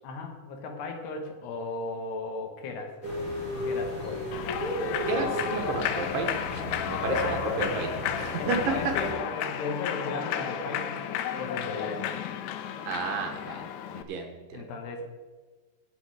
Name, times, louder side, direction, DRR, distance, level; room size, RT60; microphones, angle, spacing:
voice 1, 0.0-2.9 3.6-4.2 7.2-7.5 8.3-11.0 11.4-12.1 14.5-15.0, left 3 dB, 70° left, 3 dB, 3.3 m, -36 dB
sound 1, 3.0-9.1, left 1 dB, 25° left, 2.0 m, -33 dB
Human voice / Clapping / Cheering, 4.3-14.0, left 9 dB, 85° left, 3.0 m, -33 dB
voice 2, 5.1-7.9 8.2-8.6 12.9-13.7 13.9-14.6, right 4 dB, 70° right, 4 dB, 2.1 m, -32 dB
18.5 x 6.6 x 4.8 m, 1.3 s
omnidirectional pair, 5.4 m